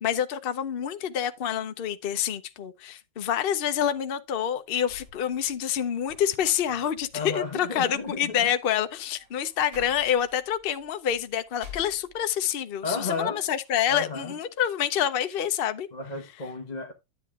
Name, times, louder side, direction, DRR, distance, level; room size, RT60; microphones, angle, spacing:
voice 1, 0.0-15.9, left 9 dB, 65° left, 0.5 m, -27 dB
sound 1, 4.9-12.6 13.0-13.8, left 5 dB, 30° right, 3.6 m, -51 dB
voice 2, 7.1-8.4 12.8-13.4 13.8-14.3 15.9-16.9, left 4 dB, 25° left, 1.1 m, -33 dB
10.5 x 8.2 x 2.4 m
omnidirectional pair, 2.1 m